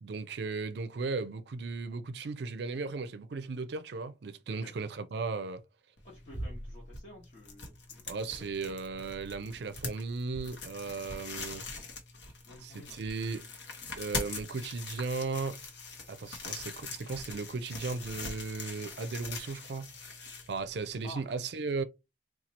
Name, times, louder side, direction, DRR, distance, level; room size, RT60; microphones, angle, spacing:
voice 1, 0.0-5.6 8.1-11.6 12.6-13.5 14.0-15.6 16.1-19.9 20.5-21.8, right 4 dB, 65° right, 0.4 m, -36 dB
sound 1, 6.0-21.1, left 3 dB, 70° left, 0.9 m, -42 dB
voice 2, 6.0-8.1 8.4-8.5 11.2-11.4 12.4-13.0 21.0-21.2, left 1 dB, 40° left, 1.1 m, -51 dB
2.8 x 2.3 x 4.0 m
head